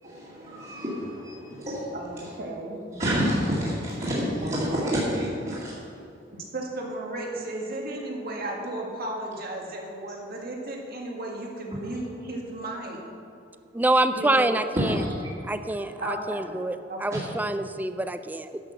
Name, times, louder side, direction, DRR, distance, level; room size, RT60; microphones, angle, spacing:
voice 1, 0.0-2.3 2.9-5.7 11.7-11.8 14.7-15.5 17.1-17.2, equal, 35° right, -9 dB, 2.3 m, -29 dB
voice 2, 1.9-2.8 4.2-5.0 6.5-13.0 14.1-14.5 16.0-16.6 16.9-17.2, right 1 dB, 55° right, -1 dB, 1.9 m, -34 dB
voice 3, 13.7-15.0 15.5-18.6, right 2 dB, 10° right, 10 dB, 0.3 m, -26 dB
11.0 x 6.2 x 6.9 m, 2.4 s
head